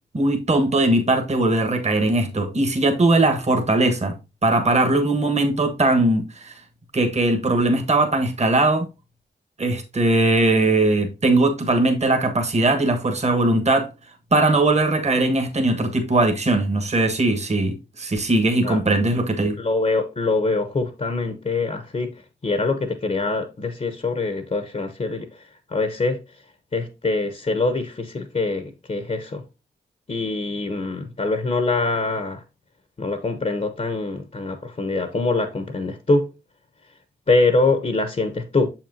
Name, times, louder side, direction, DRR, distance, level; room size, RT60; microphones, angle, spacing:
voice 1, 0.1-4.1 4.4-6.5 6.9-8.9 9.6-13.9 14.3-19.6, right 2 dB, 35° right, 1.3 m, -20 dB
voice 2, 19.6-22.1 22.4-25.3 25.7-26.2 26.7-29.4 30.1-32.4 33.0-36.3 37.3-38.7, left 3 dB, 40° left, 0.9 m, -24 dB
6.6 x 5.9 x 2.7 m
cardioid pair, 55°, 19 cm